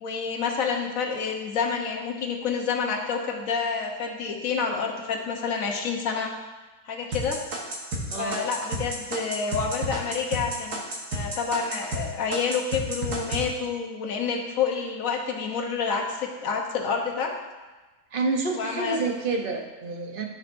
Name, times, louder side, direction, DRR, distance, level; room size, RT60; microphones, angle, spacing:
voice 1, 0.0-6.3 6.9-7.4 8.2-10.8 11.1-17.3 18.6-19.0, left 5 dB, 60° left, 2 dB, 1.3 m, -28 dB
sound 1, 7.1-12.0 12.3-13.4, right 1 dB, 75° right, 1.9 m, -31 dB
voice 2, 8.1-8.5 18.1-20.3, right 3 dB, 40° right, 3 dB, 0.9 m, -28 dB
14.0 x 5.6 x 2.6 m, 1.2 s
omnidirectional pair, 1.7 m